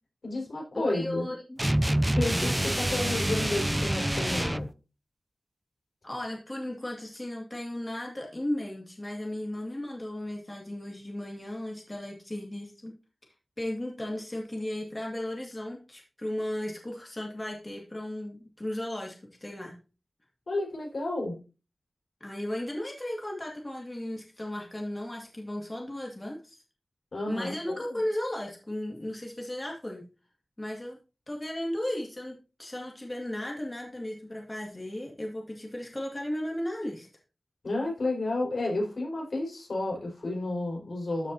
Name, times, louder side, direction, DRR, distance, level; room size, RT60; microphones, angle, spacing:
voice 1, 0.2-1.3 2.1-4.7 20.5-21.4 27.1-28.0 37.6-41.3, left 2 dB, 80° left, -1 dB, 4.9 m, -31 dB
voice 2, 0.7-1.6 6.0-12.9 13.6-19.8 22.2-26.6 27.3-30.0 30.6-31.0 31.3-37.1, left 1 dB, 30° left, 0 dB, 2.2 m, -35 dB
sound 1, 1.6-4.7, right 1 dB, 15° right, 0.3 m, -27 dB
13.5 x 5.0 x 2.8 m, 0.32 s
wide cardioid pair, 65°, 0 cm